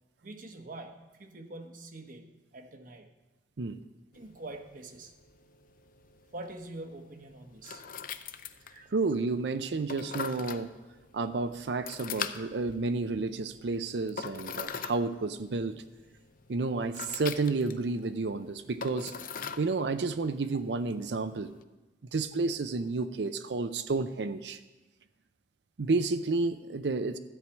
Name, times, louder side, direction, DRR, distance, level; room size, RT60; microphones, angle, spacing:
voice 1, 0.2-3.1 4.1-5.1 6.3-7.8 8.7-8.9, right 2 dB, 50° right, 5 dB, 1.0 m, -45 dB
sound 1, 4.1-21.6, left 6 dB, 55° left, 0.5 m, -43 dB
voice 2, 8.9-10.7 11.1-15.8 16.5-19.1 19.6-21.5 22.1-24.6 25.8-27.2, right 3 dB, 75° right, 10 dB, 0.5 m, -31 dB
13.0 x 4.8 x 8.3 m, 1.1 s
head